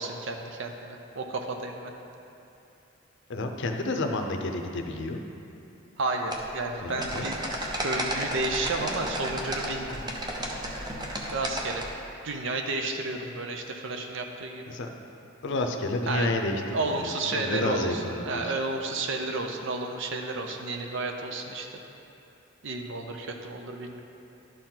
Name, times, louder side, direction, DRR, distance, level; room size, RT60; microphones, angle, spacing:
voice 1, 0.0-1.9 6.0-7.4 7.8-10.0 11.3-11.8 12.2-14.7 16.1-16.3 16.7-21.7 22.6-24.0, right 2 dB, 65° right, 3 dB, 0.7 m, -32 dB
voice 2, 3.3-5.2 6.8-7.3 14.7-14.9 15.4-18.4, left 2 dB, 60° left, 4 dB, 0.6 m, -30 dB
sound 1, 6.3-11.9, right 1 dB, 20° right, 0.7 m, -33 dB
11.5 x 4.5 x 3.9 m, 2.8 s
head